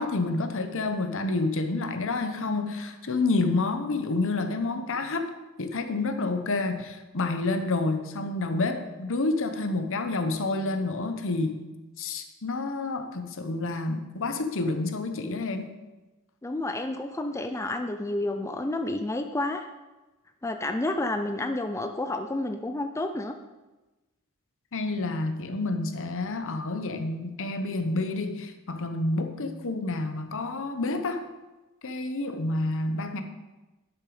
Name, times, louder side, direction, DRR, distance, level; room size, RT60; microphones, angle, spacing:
voice 1, 0.0-5.3 5.6-11.6 12.0-15.7 24.7-31.2 31.8-33.2, left 2 dB, 60° left, 8 dB, 1.0 m, -29 dB
voice 2, 16.4-19.7 20.4-23.3, left 2 dB, 15° left, 6 dB, 0.4 m, -30 dB
11.0 x 6.5 x 4.9 m, 1.1 s
head